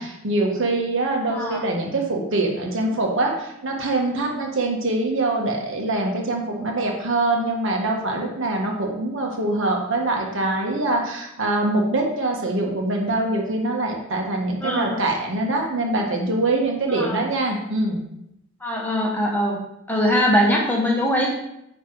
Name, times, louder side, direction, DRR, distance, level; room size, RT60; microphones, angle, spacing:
voice 1, 0.0-18.0, right 2 dB, 65° right, 0 dB, 1.4 m, -24 dB
voice 2, 1.3-1.6 14.6-15.0 16.9-17.2 18.6-19.6 19.9-21.3, equal, 10° left, -2 dB, 1.2 m, -21 dB
9.7 x 3.3 x 4.6 m, 0.81 s
head